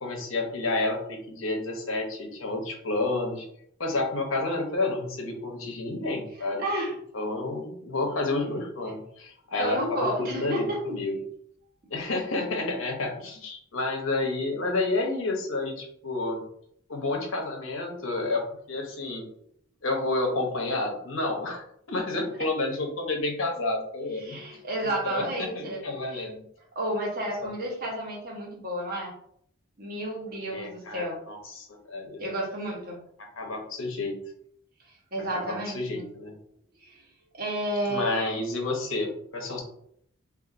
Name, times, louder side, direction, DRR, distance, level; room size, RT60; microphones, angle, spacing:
voice 1, 0.0-3.5 3.8-6.6 7.1-11.2 11.9-16.4 16.9-19.2 19.8-24.4 25.0-26.4 30.5-32.2 33.4-34.2 35.3-36.4 37.9-39.6, left 2 dB, 90° left, 1 dB, 0.8 m, -30 dB
voice 2, 6.6-6.9 9.6-11.0 24.1-25.8 26.1-26.2 26.7-29.1 29.8-31.2 32.2-33.0 35.1-36.0 36.8-37.0 37.3-38.3, right 1 dB, 50° right, -2 dB, 1.0 m, -31 dB
3.8 x 2.5 x 2.5 m, 0.68 s
head